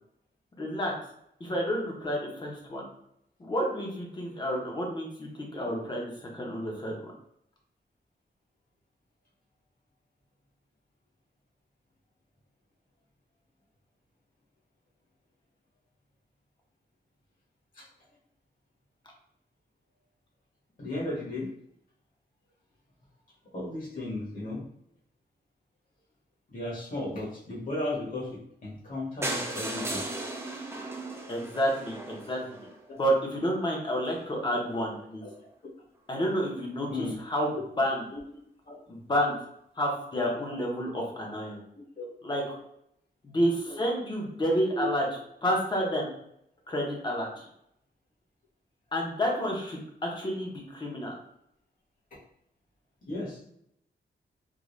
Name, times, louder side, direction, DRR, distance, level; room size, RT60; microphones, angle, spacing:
voice 1, 0.6-0.9 1.4-2.8 3.4-7.0 31.3-32.5 33.0-35.2 36.1-38.1 38.9-39.3 39.8-41.6 42.2-42.4 43.2-45.1 45.4-46.1 46.7-47.5 48.9-51.2, equal, 25° left, -1 dB, 0.8 m, -30 dB
voice 2, 20.8-21.5 23.5-24.6 26.5-30.0 35.2-35.3 36.9-37.1 38.1-38.2 38.7-38.8 42.0-42.1 43.7-43.8 44.7-44.9 53.1-53.4, left 1 dB, 50° left, -6 dB, 1.4 m, -35 dB
sound 1, 29.2-33.1 33.7-33.8 34.1-34.2 34.5-34.6 34.7-34.8, right 2 dB, 15° right, 0.4 m, -36 dB
3.7 x 2.3 x 3.1 m, 0.74 s
wide cardioid pair, 175°, 18 cm